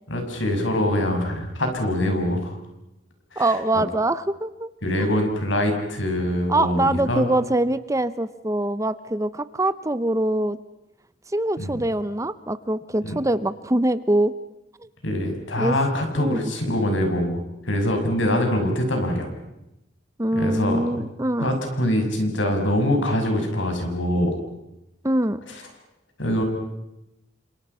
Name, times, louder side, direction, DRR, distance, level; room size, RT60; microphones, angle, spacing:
voice 1, 0.1-2.5 3.3-3.5 4.8-7.2 11.6-11.7 13.0-13.1 15.0-17.4 17.7-19.3 20.3-21.1 21.4-24.4 26.2-26.4, left 1 dB, 75° left, 4 dB, 6.6 m, -24 dB
voice 2, 3.4-4.7 5.0-5.1 6.5-10.6 11.3-14.3 15.6-15.8 16.1-16.4 20.2-21.5 25.0-25.4, right 1 dB, 15° right, 14 dB, 0.8 m, -23 dB
29.5 x 27.0 x 5.7 m, 0.90 s
head